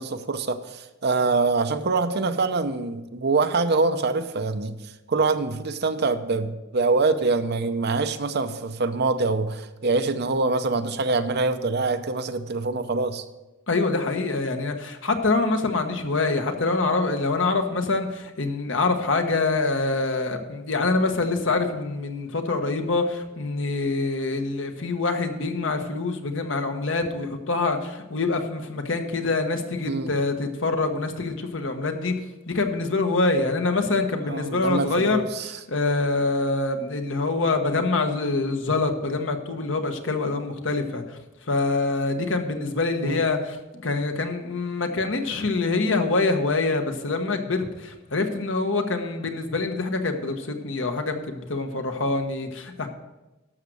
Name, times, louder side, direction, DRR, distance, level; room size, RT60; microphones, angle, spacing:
voice 1, 0.0-4.8 5.1-13.2 29.9-30.1 34.3-35.5 43.0-43.2, right 3 dB, 55° right, 9 dB, 0.7 m, -24 dB
voice 2, 13.7-32.2 32.5-52.9, left 3 dB, 70° left, 5 dB, 1.2 m, -25 dB
12.5 x 6.6 x 6.2 m, 1.1 s
head